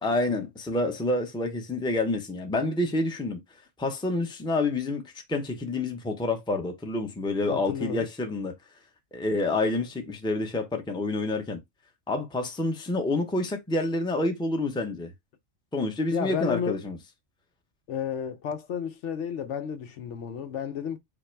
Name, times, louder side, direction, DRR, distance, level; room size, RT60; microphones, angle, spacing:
voice 1, 0.0-3.4 3.8-8.5 9.1-11.6 12.1-15.1 15.7-17.0, left 2 dB, 5° left, 0.6 m, -28 dB
voice 2, 7.5-8.1 9.7-9.9 16.1-16.8 17.9-21.0, left 8 dB, 70° left, 0.9 m, -32 dB
5.1 x 2.1 x 4.5 m
omnidirectional pair, 1.3 m